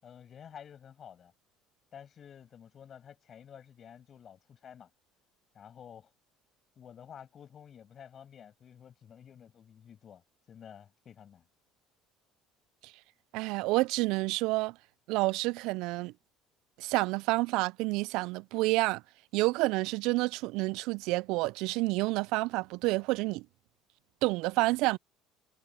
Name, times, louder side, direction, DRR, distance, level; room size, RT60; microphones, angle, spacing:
voice 1, 0.0-1.3 1.9-4.9 5.5-6.1 6.8-10.2 10.5-11.5, left 8 dB, 40° left, 7.2 m, -51 dB
voice 2, 13.3-14.7 15.1-16.1 16.8-19.0 19.3-23.5 24.2-25.0, right 22 dB, 75° right, 0.3 m, -29 dB
supercardioid pair, 105°, 0 cm